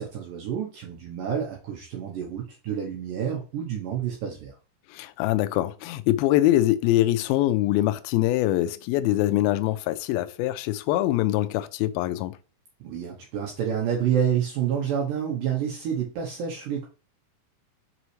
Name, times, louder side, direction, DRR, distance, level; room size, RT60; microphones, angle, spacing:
voice 1, 0.0-4.6 12.8-16.9, right 8 dB, 70° right, 2.3 m, -28 dB
voice 2, 4.9-12.4, left 15 dB, 80° left, 2.3 m, -23 dB
6.2 x 5.5 x 3.2 m
omnidirectional pair, 4.5 m